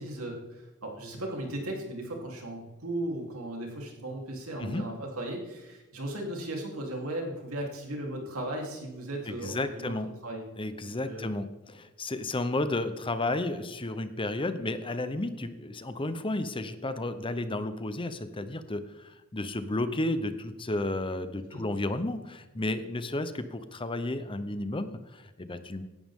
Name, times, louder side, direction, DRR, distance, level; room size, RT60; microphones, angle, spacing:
voice 1, 0.0-9.9 10.2-10.4 11.0-11.3 21.5-21.6, right 1 dB, 85° right, 0 dB, 3.5 m, -36 dB
voice 2, 9.4-10.1 10.6-25.8, left 2 dB, 25° left, 11 dB, 0.8 m, -32 dB
16.5 x 11.5 x 3.7 m, 1.1 s
head